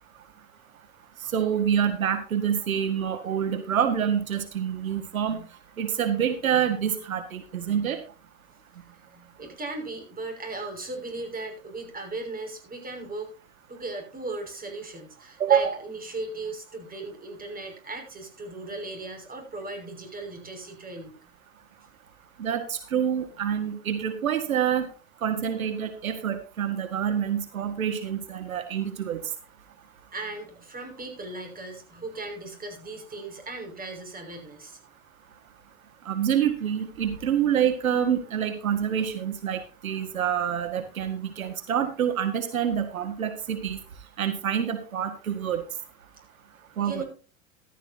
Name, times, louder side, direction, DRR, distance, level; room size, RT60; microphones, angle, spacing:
voice 1, 1.3-5.4 5.8-8.0 15.4-15.8 22.4-24.9 25.2-29.2 36.1-43.8 44.2-45.6 46.8-47.0, right 8 dB, 85° right, 8 dB, 1.9 m, -27 dB
voice 2, 8.8-13.3 13.7-21.2 30.1-34.8 46.8-47.0, right 2 dB, 20° right, 4 dB, 6.0 m, -37 dB
14.5 x 13.5 x 2.8 m, 0.35 s
hypercardioid pair, 95°, 40 cm